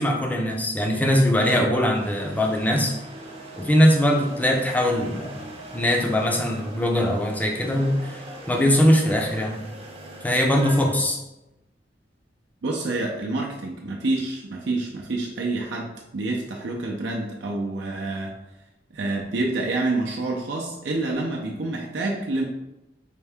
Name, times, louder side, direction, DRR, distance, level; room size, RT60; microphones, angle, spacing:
voice 1, 0.0-2.9 3.6-5.5 5.7-9.6 10.2-11.2, equal, 10° left, 1 dB, 0.5 m, -21 dB
sound 1, 1.9-10.9, right 1 dB, 35° right, 0.6 m, -41 dB
voice 2, 12.6-18.3 18.9-22.4, right 2 dB, 75° right, -1 dB, 0.5 m, -27 dB
4.5 x 2.7 x 3.4 m, 0.94 s
head